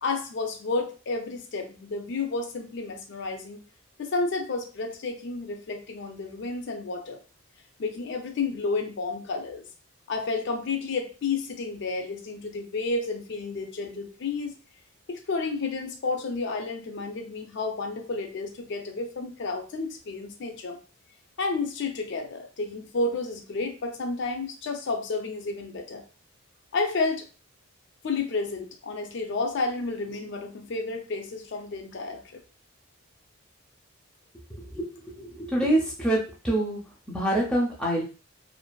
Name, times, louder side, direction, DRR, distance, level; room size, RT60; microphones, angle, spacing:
voice 1, 0.0-3.6 4.0-7.2 7.8-9.6 10.1-14.6 15.1-20.8 21.4-26.0 26.7-27.3 28.0-32.4, left 3 dB, 55° left, 4 dB, 0.4 m, -31 dB
voice 2, 34.6-36.2 36.4-36.8 37.1-38.0, right 1 dB, 5° left, -3 dB, 0.5 m, -26 dB
2.5 x 2.4 x 2.2 m, 0.35 s
head